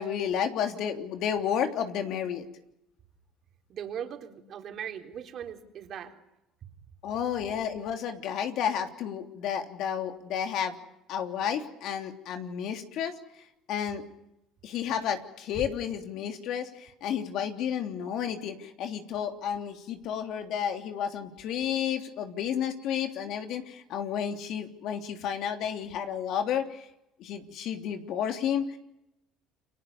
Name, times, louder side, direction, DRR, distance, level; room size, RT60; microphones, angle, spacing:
voice 1, 0.0-2.4 7.0-10.8 11.1-13.1 13.7-14.0 14.6-26.9 27.2-28.8, left 8 dB, 65° left, 6 dB, 3.2 m, -31 dB
voice 2, 3.7-6.2, right 9 dB, 50° right, 4 dB, 3.9 m, -39 dB
30.0 x 24.0 x 7.1 m, 0.87 s
supercardioid pair, 95°, 0 cm